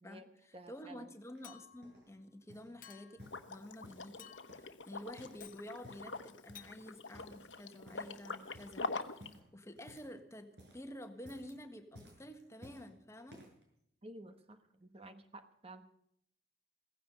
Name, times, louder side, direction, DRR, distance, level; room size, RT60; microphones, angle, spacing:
voice 1, 0.0-13.4, left 1 dB, 15° left, 7 dB, 1.6 m, -50 dB
voice 2, 0.5-1.1 14.0-15.9, right 1 dB, 30° right, 9 dB, 1.1 m, -53 dB
sound 1, 1.3-2.1 2.5-2.8 3.2-4.1 4.5-5.5 5.7-6.1 6.5-6.8 7.1-7.6 7.9-8.2 8.5-8.8 9.2-10.2 10.5-10.9 11.2-11.6 11.9-12.9 13.3-13.6 14.3-14.4, equal, 65° right, 6.2 m, -57 dB
Chink clink, 1.4-2.0 2.8-3.3 4.2-4.7 5.4-5.7 6.6-6.7, left 10 dB, 50° left, 1.0 m, -55 dB
Liquid, 3.2-9.3, left 3 dB, 85° left, 1.1 m, -45 dB
16.5 x 15.5 x 5.4 m, 0.69 s
head